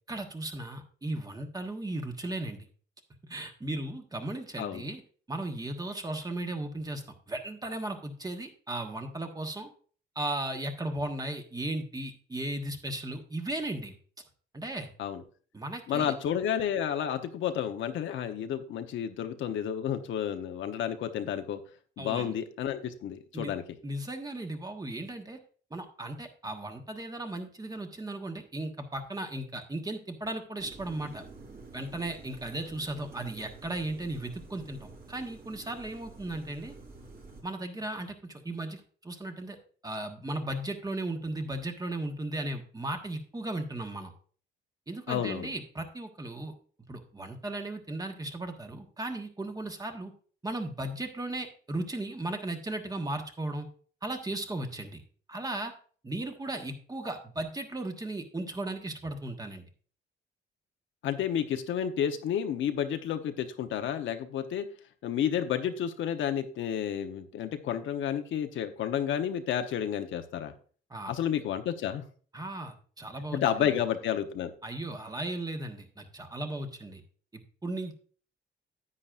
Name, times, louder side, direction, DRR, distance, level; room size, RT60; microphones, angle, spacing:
voice 1, 0.1-2.7 3.2-5.0 5.3-9.7 10.1-13.9 14.5-14.9 15.5-16.1 22.0-22.3 23.3-23.5 23.8-25.4 25.7-31.2 31.7-36.7 37.4-39.6 39.8-44.1 44.9-46.5 46.9-50.1 50.4-53.7 54.0-55.0 55.3-55.7 56.0-59.7 70.9-71.1 72.3-73.7 74.6-77.0 77.3-77.9, right 1 dB, 20° right, 5 dB, 1.4 m, -36 dB
voice 2, 15.9-21.6 22.0-23.6 45.1-45.5 61.0-64.6 65.0-70.5 71.1-72.0 73.3-74.5, left 9 dB, 75° left, 7 dB, 1.0 m, -31 dB
sound 1, 30.6-37.4, right 3 dB, 50° right, 3.8 m, -49 dB
10.0 x 8.7 x 2.5 m, 0.43 s
cardioid pair, 90°, 20 cm